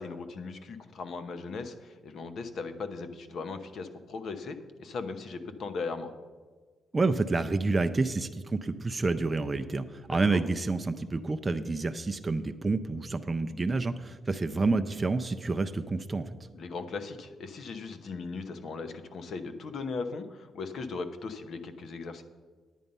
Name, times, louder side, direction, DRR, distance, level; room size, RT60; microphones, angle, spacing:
voice 1, 0.0-6.1 10.1-10.4 16.5-22.2, left 4 dB, 55° left, 9 dB, 0.9 m, -38 dB
voice 2, 6.9-16.3, right 3 dB, 20° right, 7 dB, 0.4 m, -29 dB
9.9 x 9.2 x 5.4 m, 1.4 s
cardioid pair, 150°, 0 cm